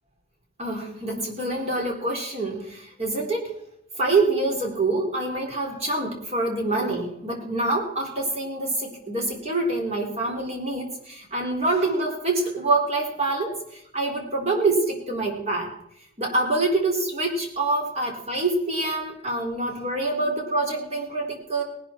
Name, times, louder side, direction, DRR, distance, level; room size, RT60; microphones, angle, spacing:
voice 1, 0.6-3.5 4.0-15.7 16.2-21.6, right 2 dB, 35° right, 1 dB, 3.7 m, -26 dB
18.5 x 12.0 x 4.4 m, 0.76 s
head